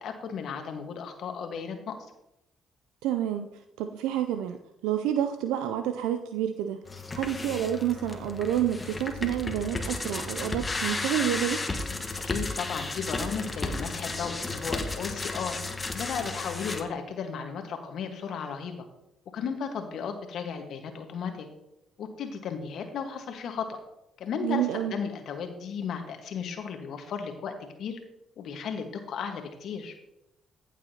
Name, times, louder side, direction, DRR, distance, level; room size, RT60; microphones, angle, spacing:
voice 1, 0.0-1.9 12.2-15.6 15.9-18.8 19.3-21.5 22.0-23.8 24.2-28.0 28.4-29.9, left 6 dB, 65° left, 6 dB, 1.4 m, -35 dB
voice 2, 3.0-3.5 3.8-4.6 4.8-6.8 7.2-11.6 24.4-24.9, right 11 dB, 80° right, 8 dB, 0.4 m, -29 dB
sound 1, 6.9-16.8, left 3 dB, 25° left, 1.3 m, -33 dB
15.0 x 7.0 x 2.9 m, 0.86 s
hypercardioid pair, 50°, 0 cm